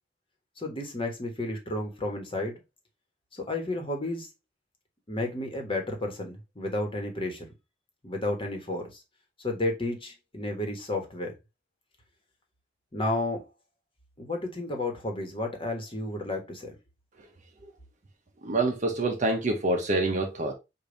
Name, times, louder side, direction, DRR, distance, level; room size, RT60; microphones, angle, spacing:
voice 1, 0.6-2.6 3.3-4.3 5.1-7.4 8.0-8.9 9.4-11.3 12.9-13.5 14.2-16.8, left 2 dB, 30° left, 1.3 m, -32 dB
voice 2, 18.4-20.5, right 2 dB, 45° right, 0.8 m, -26 dB
5.2 x 2.6 x 3.9 m
head